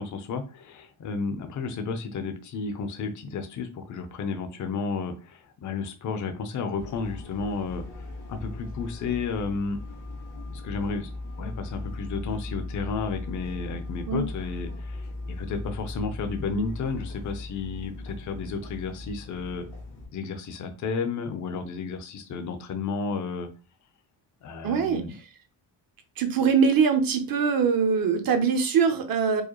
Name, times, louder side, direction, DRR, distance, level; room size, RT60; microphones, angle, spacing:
voice 1, 0.0-7.8 8.3-9.8 10.5-11.1 11.4-19.7 20.1-23.5 24.4-25.1, left 4 dB, 40° left, 7 dB, 0.6 m, -32 dB
sound 1, 6.8-20.1, left 2 dB, 80° left, 1.9 m, -38 dB
voice 2, 24.6-25.0 26.2-29.4, right 6 dB, 50° right, 7 dB, 0.7 m, -22 dB
4.7 x 2.2 x 3.0 m, 0.31 s
cardioid pair, 170°, 46 cm